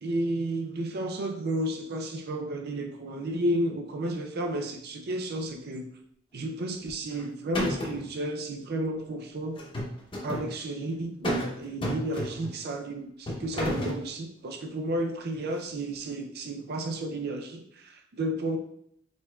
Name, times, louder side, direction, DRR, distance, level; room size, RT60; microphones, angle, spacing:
voice 1, 0.0-5.9 6.3-9.6 10.2-18.6, right 1 dB, 55° right, 4 dB, 0.5 m, -32 dB
sound 1, 6.9-7.2 7.5-8.1 9.6-10.5 11.2-11.5 11.8-12.6 13.3-14.0, equal, 25° left, 0.9 m, -31 dB
4.9 x 3.6 x 2.3 m, 0.69 s
head